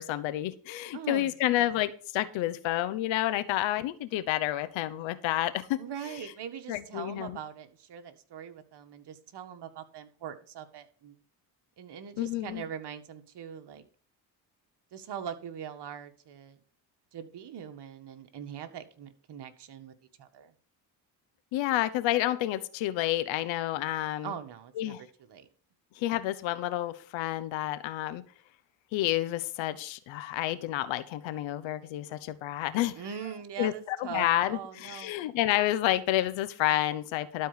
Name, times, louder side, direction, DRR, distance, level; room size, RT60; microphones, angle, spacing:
voice 1, 0.0-5.8 6.7-7.4 12.2-12.6 21.5-24.3 24.8-25.0 26.0-28.2 28.9-33.0 33.6-37.5, left 14 dB, 85° left, 13 dB, 1.0 m, -29 dB
voice 2, 0.9-1.3 5.8-11.2 11.8-13.8 14.9-16.6 17.1-20.5 24.2-25.5 33.0-35.1, right 8 dB, 60° right, 6 dB, 1.8 m, -42 dB
12.5 x 4.6 x 6.8 m, 0.43 s
supercardioid pair, 70°, 45 cm